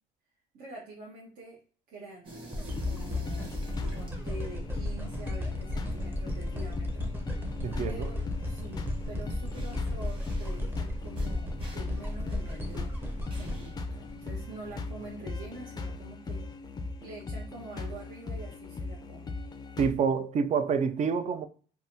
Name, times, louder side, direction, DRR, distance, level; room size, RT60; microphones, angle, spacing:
voice 1, 0.5-1.6 1.9-3.5 3.9-7.1 7.8-12.9 13.3-16.4 17.0-19.4, right 2 dB, 70° right, 1.1 m, -46 dB
sound 1, 2.2-15.2, right 1 dB, 30° right, 1.3 m, -50 dB
sound 2, 2.5-14.7 15.3-15.4, left 1 dB, 10° right, 0.7 m, -35 dB
sound 3, 2.7-19.9, left 3 dB, 25° left, 0.4 m, -39 dB
voice 2, 7.6-8.1 19.8-21.5, right 6 dB, 45° right, 0.4 m, -27 dB
3.5 x 2.2 x 2.6 m
cardioid pair, 110°, 17 cm